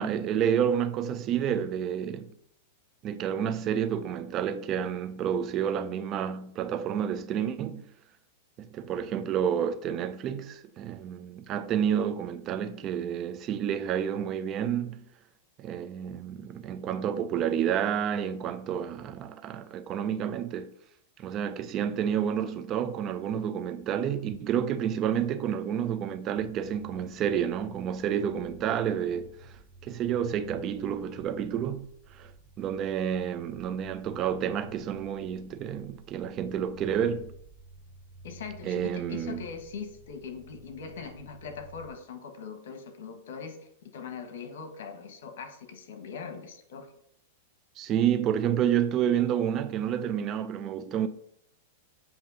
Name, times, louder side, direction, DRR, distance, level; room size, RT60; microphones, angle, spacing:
voice 1, 0.0-2.3 3.0-7.8 8.6-15.0 15.6-20.7 21.2-29.3 29.8-31.9 32.1-32.3 32.6-37.3 38.6-39.4 47.8-51.1, right 9 dB, 35° right, 0.5 m, -29 dB
sound 1, 26.4-41.9, right 2 dB, 50° right, 1.2 m, -51 dB
voice 2, 38.2-46.9, left 6 dB, 75° left, 1.2 m, -41 dB
7.6 x 2.8 x 5.3 m
hypercardioid pair, 130°, 0 cm